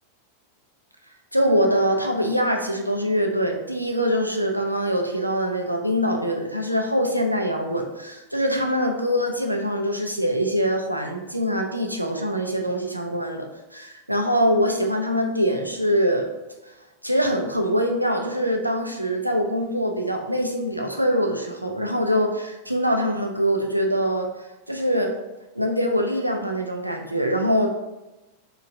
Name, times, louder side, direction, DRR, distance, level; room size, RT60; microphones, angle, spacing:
voice 1, 1.3-13.5 13.7-16.3 17.0-25.1 25.5-27.7, equal, 90° right, 2 dB, 0.5 m, -23 dB
4.1 x 2.4 x 3.3 m, 1.0 s
figure-of-eight pair, 90°, 0 cm